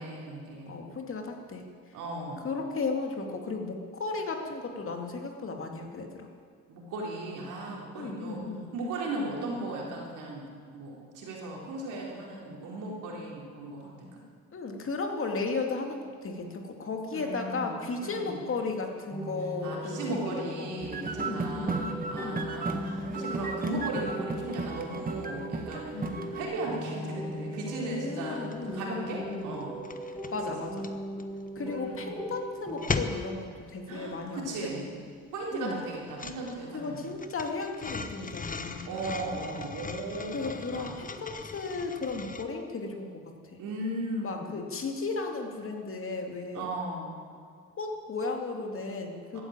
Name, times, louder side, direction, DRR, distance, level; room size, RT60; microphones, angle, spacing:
voice 1, 0.0-0.8 1.9-2.5 6.7-8.4 8.7-14.2 17.1-18.4 19.6-25.9 26.2-29.8 31.5-32.1 33.9-34.9 35.3-37.1 38.8-40.9 43.6-44.5 46.5-47.2 49.3-49.4, right 2 dB, 85° right, -2 dB, 4.0 m, -37 dB
voice 2, 0.7-1.6 2.4-6.3 7.9-8.7 14.5-20.7 21.2-22.5 25.9-26.2 27.8-29.6 30.3-30.9 31.6-34.7 35.5-35.8 36.7-38.9 40.3-43.6 44.2-46.7 47.8-49.4, left 3 dB, 45° left, 3 dB, 2.4 m, -35 dB
sound 1, 19.1-32.9, right 1 dB, 5° left, 2.0 m, -39 dB
sound 2, 20.8-26.4, right 3 dB, 30° right, 1.6 m, -35 dB
sound 3, 27.3-27.5 27.7-28.8 29.0-42.4, left 4 dB, 25° left, 1.1 m, -39 dB
15.0 x 10.0 x 8.9 m, 2.2 s
cardioid pair, 90°, 30 cm